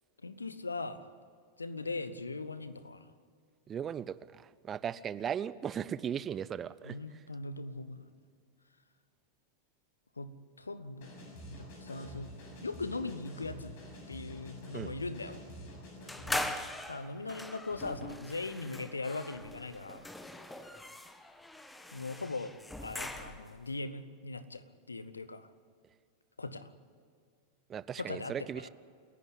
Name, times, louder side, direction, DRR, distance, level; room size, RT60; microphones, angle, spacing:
voice 1, 0.2-1.1 1.6-3.1 6.8-8.1 10.2-10.3 10.6-11.1 11.5-12.3 12.6-13.7 14.1-15.4 16.9-20.1 21.9-22.5 22.8-25.5 26.4-26.7 28.0-28.7, left 3 dB, 80° left, 14 dB, 1.1 m, -40 dB
voice 2, 3.7-7.0 14.7-14.9 27.7-28.7, right 8 dB, 25° right, 17 dB, 0.6 m, -37 dB
sound 1, 11.0-16.5, equal, 50° left, 6.7 m, -48 dB
sound 2, 16.1-23.6, left 1 dB, 5° left, 1.4 m, -41 dB
29.0 x 11.5 x 9.9 m, 2.2 s
figure-of-eight pair, 90°, 0 cm